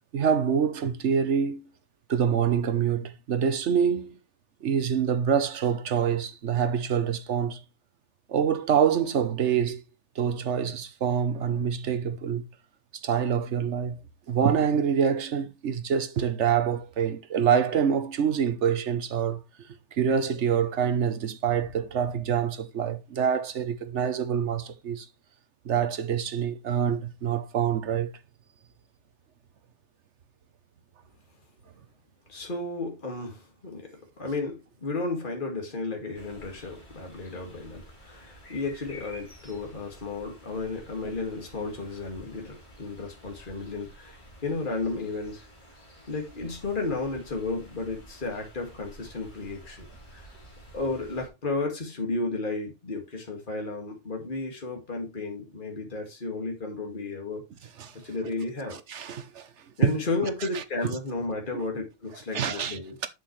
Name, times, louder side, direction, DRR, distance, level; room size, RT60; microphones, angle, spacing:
voice 1, 0.1-1.6 2.1-4.1 4.6-7.6 8.3-9.8 10.2-12.4 13.0-14.0 14.3-19.4 19.9-25.1 25.6-28.1 57.8-57.9 58.9-59.5 59.8-59.9 60.5-60.6 62.3-63.1, right 7 dB, 70° right, 1.2 m, -26 dB
voice 2, 32.3-45.5 46.1-50.3 50.7-57.4 57.9-58.8 59.8-63.0, left 3 dB, 40° left, 2.3 m, -33 dB
sound 1, 36.1-51.3, equal, 25° left, 5.4 m, -50 dB
7.7 x 7.7 x 3.2 m
omnidirectional pair, 1.3 m